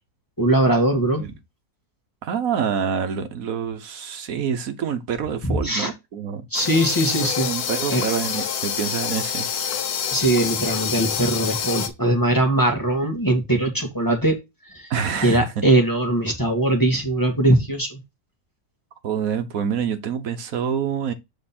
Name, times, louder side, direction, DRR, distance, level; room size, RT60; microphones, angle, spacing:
voice 1, 0.4-1.3 5.4-5.9 6.5-7.5 7.9-8.0 10.1-14.4 14.6-14.9 15.2-18.0, right 1 dB, 15° left, 1.4 m, -21 dB
voice 2, 2.2-6.5 7.2-9.5 14.9-15.5 19.0-21.1, right 7 dB, 70° right, 1.3 m, -27 dB
sound 1, 6.5-11.9, left 8 dB, 85° left, 1.4 m, -27 dB
7.5 x 3.5 x 4.2 m
omnidirectional pair, 1.6 m